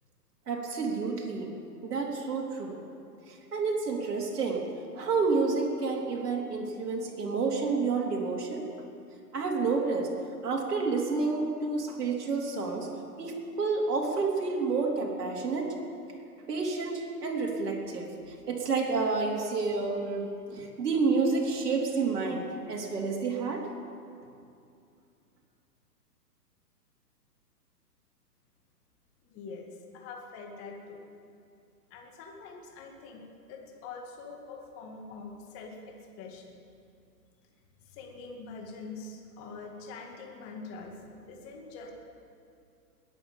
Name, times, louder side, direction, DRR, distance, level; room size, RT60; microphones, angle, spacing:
voice 1, 0.5-1.5 1.8-2.8 3.3-4.7 5.0-8.7 9.3-10.1 10.4-12.9 13.2-15.7 16.5-18.1 18.5-23.7, right 4 dB, 65° right, -1 dB, 3.5 m, -29 dB
voice 2, 29.3-31.0 31.9-36.6 37.8-41.9, left 4 dB, 25° left, 1 dB, 2.2 m, -44 dB
21.0 x 9.3 x 7.2 m, 2.5 s
hypercardioid pair, 125°, 50 cm